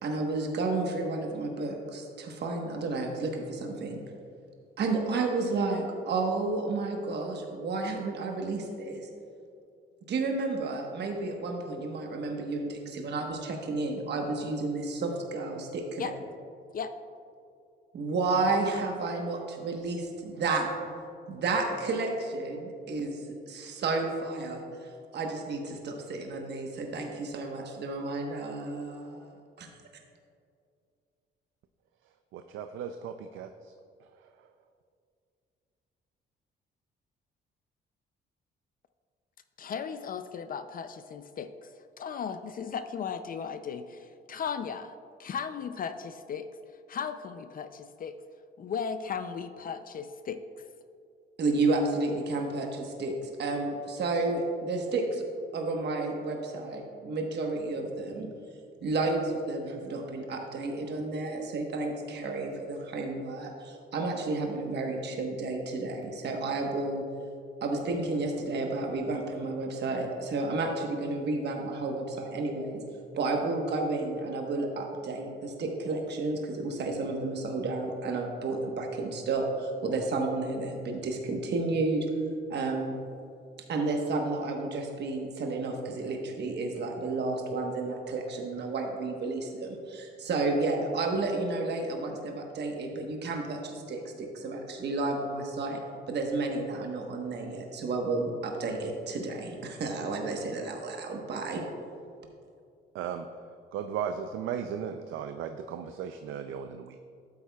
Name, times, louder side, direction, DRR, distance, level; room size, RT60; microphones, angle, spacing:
voice 1, 0.0-4.0 4.8-9.1 10.1-16.1 17.9-20.7 21.3-29.3 29.6-29.7 51.4-55.2 55.5-58.3 58.8-67.0 67.6-72.8 73.2-82.1 82.5-82.9 83.7-95.8 96.1-101.6, right 3 dB, 60° right, 2 dB, 1.2 m, -31 dB
voice 2, 32.3-33.7 102.9-103.3 103.7-107.0, right 8 dB, 80° right, 7 dB, 0.4 m, -36 dB
voice 3, 39.6-44.9 45.2-48.2 48.6-50.7, left 6 dB, 45° left, 10 dB, 0.4 m, -36 dB
12.0 x 8.5 x 2.3 m, 2.4 s
cardioid pair, 90°, 20 cm